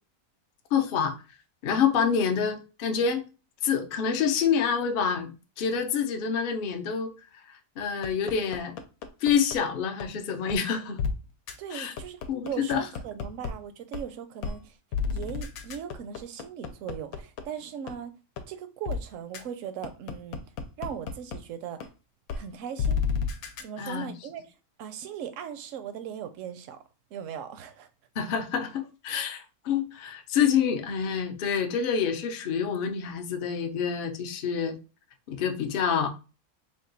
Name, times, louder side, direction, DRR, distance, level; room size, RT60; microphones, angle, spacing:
voice 1, 0.7-1.1 1.6-3.2 3.6-5.3 5.6-7.1 7.5-8.7 9.2-11.0 11.7-11.9 12.3-12.9 23.8-24.1 28.2-34.8 35.3-36.1, left 7 dB, 60° left, 0.5 m, -27 dB
sound 1, 8.0-9.6 10.0-10.1 10.5-10.6 11.0-11.1 11.5-11.6 12.0-13.5 13.9-14.0 14.4-14.6 14.9-17.4 17.9-18.0 18.4-18.5 18.9-19.0 19.3-19.4 19.8-21.4 21.8-21.9 22.3-22.4 22.8-23.6, left 6 dB, 80° left, 1.1 m, -30 dB
voice 2, 11.6-14.8 15.1-18.1 18.5-20.4 20.8-21.8 22.3-23.0 23.6-24.5 24.8-26.8 27.1-27.9, right 8 dB, 70° right, 0.9 m, -38 dB
3.6 x 2.3 x 3.9 m
omnidirectional pair, 1.5 m